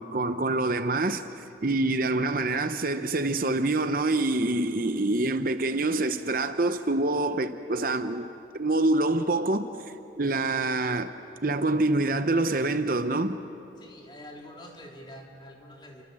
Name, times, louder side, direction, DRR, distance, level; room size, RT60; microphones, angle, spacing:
voice 1, 0.0-8.3 8.5-9.7 10.2-11.1 11.4-13.4, right 2 dB, 50° right, 0.8 m, -26 dB
voice 2, 13.8-16.0, left 1 dB, 25° left, 3.3 m, -46 dB
29.5 x 24.5 x 7.6 m
head